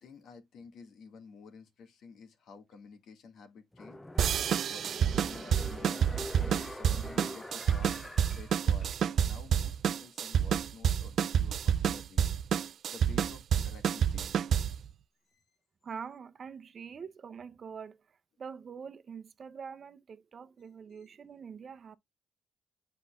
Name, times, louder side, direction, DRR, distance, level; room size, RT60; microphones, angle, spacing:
voice 1, 0.0-8.0 8.3-12.3 12.6-14.4 15.3-15.4 20.9-21.1, left 4 dB, 70° left, 2.0 m, -52 dB
sound 1, 3.7-9.3 9.7-9.8, left 1 dB, 15° left, 0.6 m, -45 dB
sound 2, 4.2-14.9, right 8 dB, 65° right, 0.4 m, -28 dB
voice 2, 15.8-22.0, right 6 dB, 45° right, 0.8 m, -45 dB
8.2 x 5.7 x 2.4 m
cardioid pair, 90°, 0 cm